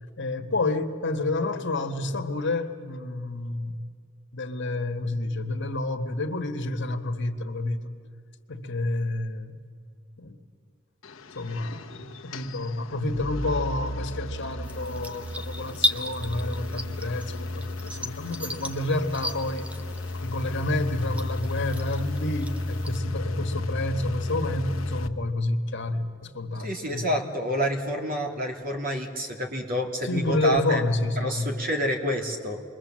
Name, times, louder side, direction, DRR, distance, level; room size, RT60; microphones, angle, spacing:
voice 1, 0.2-3.8 4.3-8.0 8.5-9.6 10.2-10.4 11.3-19.7 20.2-27.1 30.0-31.5, left 2 dB, 65° left, 6 dB, 1.6 m, -29 dB
sound 1, 11.0-25.1, left 1 dB, 90° left, 1.1 m, -33 dB
sound 2, 14.6-23.0, equal, 5° right, 0.9 m, -35 dB
voice 2, 26.6-30.8 31.2-32.6, equal, 45° right, 2 dB, 2.8 m, -28 dB
27.5 x 22.5 x 7.6 m, 2.2 s
head